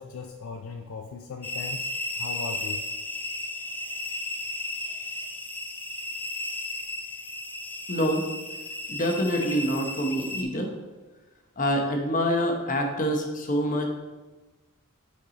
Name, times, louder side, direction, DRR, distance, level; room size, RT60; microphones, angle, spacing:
voice 1, 0.0-2.8, left 4 dB, 65° left, 4 dB, 0.4 m, -38 dB
sound 1, 1.4-10.4, left 2 dB, 10° left, 0.4 m, -34 dB
voice 2, 7.9-8.2 8.9-10.7 11.6-13.9, equal, 40° left, 3 dB, 1.0 m, -26 dB
6.6 x 4.7 x 3.9 m, 1.2 s
head